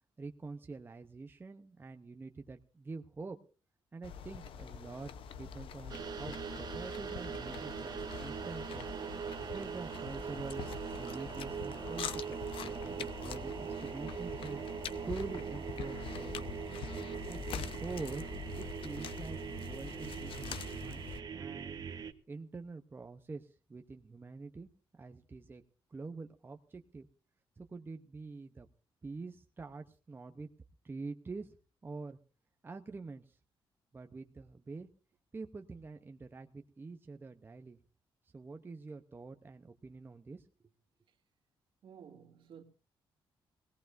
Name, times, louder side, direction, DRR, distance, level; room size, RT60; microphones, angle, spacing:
voice 1, 0.2-3.4 3.9-8.9 9.5-10.7 11.0-14.6 15.0-16.6 17.3-18.2 18.5-19.4 19.6-21.9 22.3-24.7 25.0-25.6 25.9-27.1 27.6-28.7 29.0-30.5 30.8-31.5 31.8-32.2 32.6-33.4 33.9-34.9 35.3-37.8 38.3-40.5, right 4 dB, 25° right, 0.7 m, -46 dB
sound 1, 4.0-21.2, left 7 dB, 80° left, 0.8 m, -45 dB
sound 2, 5.9-22.1, right 7 dB, 50° right, 1.1 m, -41 dB
voice 2, 41.8-42.6, right 7 dB, 65° right, 2.1 m, -53 dB
20.5 x 17.5 x 2.6 m
cardioid pair, 110°, 9 cm